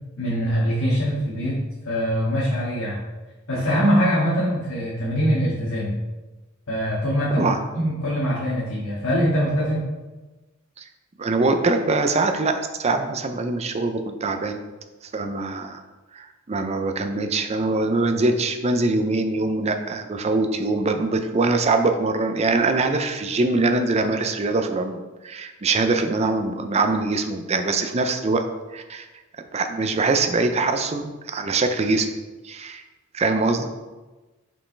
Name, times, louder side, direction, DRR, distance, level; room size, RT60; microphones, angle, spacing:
voice 1, 0.2-1.6 1.8-3.0 3.5-5.9 6.7-7.5 7.7-9.8, equal, 80° left, -9 dB, 1.8 m, -23 dB
voice 2, 11.2-14.6 15.1-15.8 16.1-28.4 28.7-29.1 29.5-32.1 32.4-32.8 33.1-33.7, right 3 dB, 30° right, 7 dB, 0.5 m, -23 dB
5.5 x 5.3 x 3.3 m, 1.2 s
head